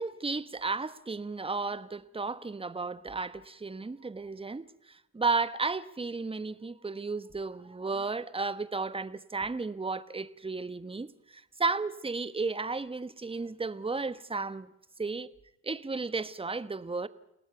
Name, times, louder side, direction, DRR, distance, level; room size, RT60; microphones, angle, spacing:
voice 1, 0.0-14.7 15.0-15.3 15.6-17.1, right 4 dB, 15° right, 1.2 m, -33 dB
29.0 x 18.0 x 6.9 m
hypercardioid pair, 60°, 41 cm